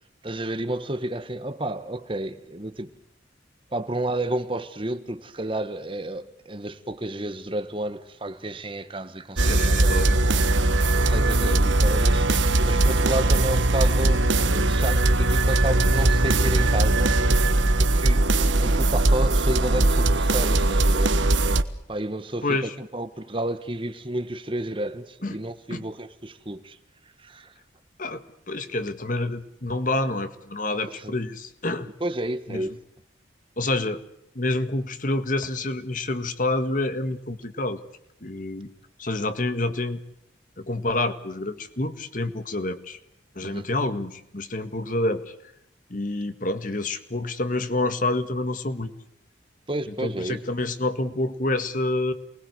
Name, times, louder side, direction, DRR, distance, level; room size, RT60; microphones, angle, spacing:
voice 1, 0.2-2.9 3.7-9.9 10.9-12.3 12.6-17.3 17.8-18.3 18.6-21.2 21.9-26.8 27.2-27.5 30.9-31.1 32.0-32.7 43.4-43.6 49.7-50.4, right 1 dB, 30° right, 1.3 m, -31 dB
sound 1, 9.4-21.6, right 2 dB, 90° right, 1.4 m, -20 dB
voice 2, 9.5-10.2 11.4-11.6 16.5-16.6 22.4-22.7 25.2-25.4 25.7-25.9 28.0-31.9 32.5-32.7 33.6-34.0 34.4-37.8 38.2-38.7 39.0-40.0 40.6-43.0 43.4-45.3 45.9-48.9 50.0-52.1, left 2 dB, 45° left, 1.8 m, -28 dB
28.5 x 20.5 x 8.0 m
head